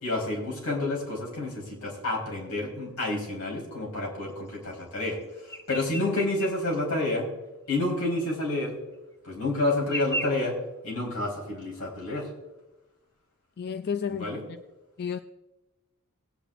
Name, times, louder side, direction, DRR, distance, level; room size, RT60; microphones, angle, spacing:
voice 1, 0.0-5.2 5.7-7.3 7.7-8.7 9.2-10.5 10.8-12.3 14.1-14.4, left 2 dB, 80° left, -2 dB, 4.1 m, -29 dB
sound 1, 5.5-6.6 6.9-7.0 7.8-7.9 8.9-9.0 9.9-10.3, equal, 10° left, 0.7 m, -34 dB
voice 2, 13.6-14.3 15.0-15.2, left 6 dB, 45° left, 9 dB, 0.4 m, -31 dB
19.5 x 8.8 x 2.5 m, 1.0 s
head